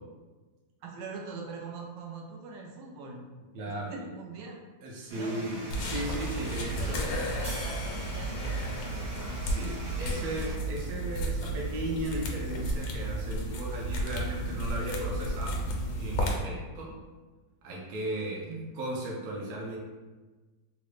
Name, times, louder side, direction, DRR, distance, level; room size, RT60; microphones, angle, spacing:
voice 1, 0.8-3.3 3.8-4.6 5.1-5.4 6.8-8.9 18.5-18.6, right 3 dB, 90° right, 0 dB, 1.3 m, -42 dB
voice 2, 3.5-3.9 4.8-7.1 8.1-8.2 9.4-15.7 15.9-17.0 17.6-18.5 18.8-19.8, right 1 dB, 65° right, -3 dB, 1.0 m, -36 dB
sound 1, 5.1-10.6, right 1 dB, 40° right, 0.5 m, -42 dB
sound 2, 5.7-16.4, right 1 dB, 75° left, 1.2 m, -33 dB
sound 3, 7.4-10.0, left 2 dB, 40° left, 0.3 m, -45 dB
3.8 x 2.0 x 3.1 m, 1.3 s
omnidirectional pair, 2.0 m